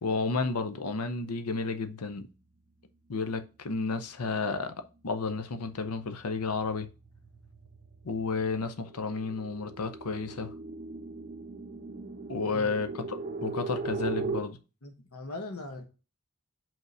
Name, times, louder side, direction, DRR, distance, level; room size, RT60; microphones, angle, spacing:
voice 1, 0.0-2.3 3.1-4.7 5.0-6.9 8.0-10.5 12.3-14.6, left 4 dB, 85° left, 0.7 m, -32 dB
sound 1, 4.7-5.1 5.5-14.4, right 3 dB, 35° right, 0.6 m, -39 dB
voice 2, 14.8-15.9, left 2 dB, 70° left, 1.1 m, -40 dB
5.4 x 3.7 x 5.4 m
head